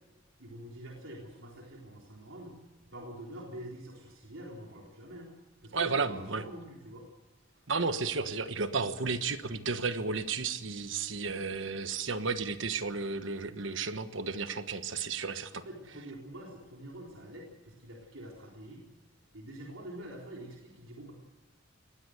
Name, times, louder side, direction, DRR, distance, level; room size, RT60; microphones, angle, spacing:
voice 1, 0.4-2.6 2.9-5.3 5.6-7.0 11.2-11.3 15.5-18.9 19.3-21.1, right 1 dB, 85° right, -2 dB, 3.8 m, -46 dB
voice 2, 5.7-6.4 7.7-15.6, right 4 dB, 65° right, 11 dB, 1.2 m, -33 dB
20.0 x 16.5 x 8.0 m, 1.2 s
head